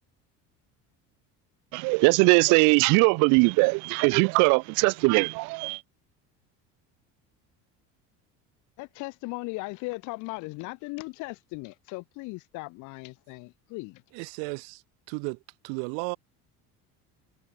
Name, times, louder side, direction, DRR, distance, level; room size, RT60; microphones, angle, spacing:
voice 1, 1.7-5.8, right 32 dB, 65° right, 0.6 m, -21 dB
voice 2, 8.8-14.0, left 25 dB, 60° left, 5.1 m, -38 dB
voice 3, 14.1-16.2, right 40 dB or more, 85° right, 2.8 m, -35 dB
cardioid pair, 180°, 33 cm